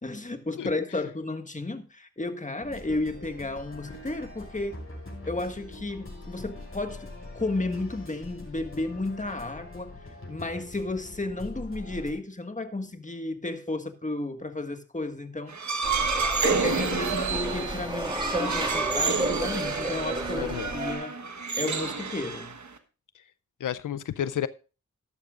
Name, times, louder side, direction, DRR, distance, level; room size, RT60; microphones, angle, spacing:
voice 1, 0.0-4.8 5.2-10.0 10.3-15.6 16.4-21.1 21.6-22.5, left 2 dB, 25° left, 1.6 m, -33 dB
sound 1, 2.6-12.1, left 2 dB, 45° left, 6.2 m, -43 dB
sound 2, 15.5-22.8, right 4 dB, 65° right, 1.3 m, -29 dB
sound 3, 15.8-21.0, right 1 dB, 15° right, 2.8 m, -32 dB
voice 2, 20.4-20.7 23.1-23.2 23.6-24.5, left 10 dB, 85° left, 0.5 m, -31 dB
13.5 x 12.0 x 2.5 m
cardioid pair, 45°, 30 cm